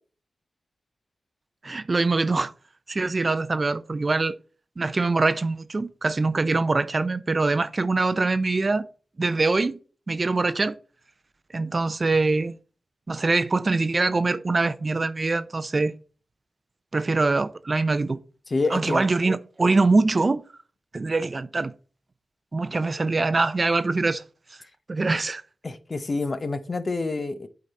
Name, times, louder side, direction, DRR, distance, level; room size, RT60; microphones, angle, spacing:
voice 1, 1.6-2.5 2.9-4.4 4.8-8.9 9.2-9.8 10.1-10.8 11.5-12.5 13.1-15.9 16.9-18.2 18.7-20.4 20.9-21.7 22.5-24.2 24.9-25.4, right 3 dB, 45° right, 0.5 m, -23 dB
voice 2, 18.5-19.0 25.6-27.5, left 3 dB, 45° left, 0.8 m, -27 dB
8.5 x 4.0 x 4.1 m
cardioid pair, 55°, 0 cm